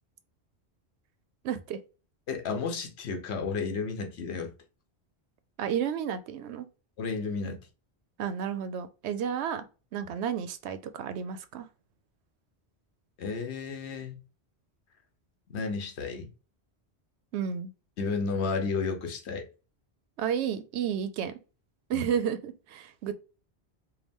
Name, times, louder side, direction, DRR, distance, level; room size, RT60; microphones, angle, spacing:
voice 1, 1.4-1.8 5.6-6.7 8.2-9.6 9.9-11.7 17.3-17.7 20.2-21.4 21.9-23.1, right 8 dB, 90° right, 0.9 m, -32 dB
voice 2, 2.3-4.5 7.0-7.6 13.2-14.2 15.5-16.3 18.0-19.5 21.9-22.1, left 4 dB, 85° left, 1.1 m, -32 dB
4.6 x 2.2 x 3.5 m
omnidirectional pair, 1.1 m